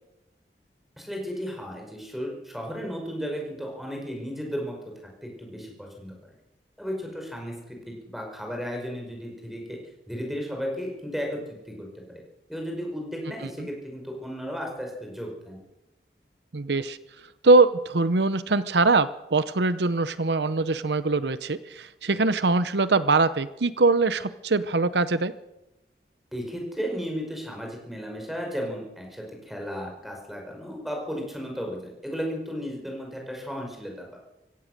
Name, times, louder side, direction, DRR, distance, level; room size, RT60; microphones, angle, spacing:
voice 1, 1.0-4.8 5.2-6.2 6.8-9.8 10.1-12.2 12.5-15.6 26.3-34.2, equal, ahead, 0 dB, 5.2 m, -34 dB
voice 2, 16.5-17.0 17.4-25.3, right 3 dB, 80° right, 14 dB, 0.8 m, -22 dB
24.5 x 16.5 x 6.6 m, 0.95 s
head